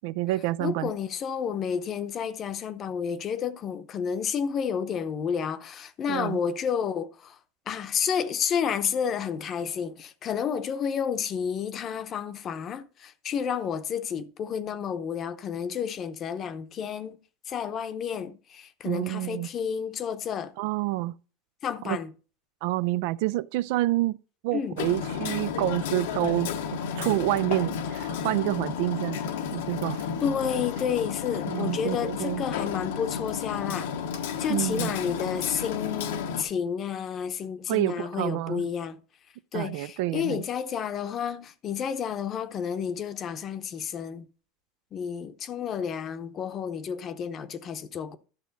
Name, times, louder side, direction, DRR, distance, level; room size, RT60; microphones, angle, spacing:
voice 1, 0.0-0.9 6.1-6.4 18.8-19.5 20.6-21.1 21.8-22.0 22.6-24.2 24.4-26.5 27.0-29.2 29.5-30.0 31.5-32.4 34.5-35.0 37.7-38.6 39.5-40.4, right 17 dB, 65° right, 0.3 m, -28 dB
voice 2, 0.6-7.4 7.7-17.2 17.5-20.5 21.6-22.1 24.5-24.8 30.2-33.9 34.4-39.0 39.5-44.3 44.9-48.2, left 7 dB, 35° left, 0.8 m, -31 dB
Hammer, 24.8-36.4, left 7 dB, 85° left, 1.0 m, -32 dB
11.5 x 6.1 x 4.0 m
supercardioid pair, 135°, 0 cm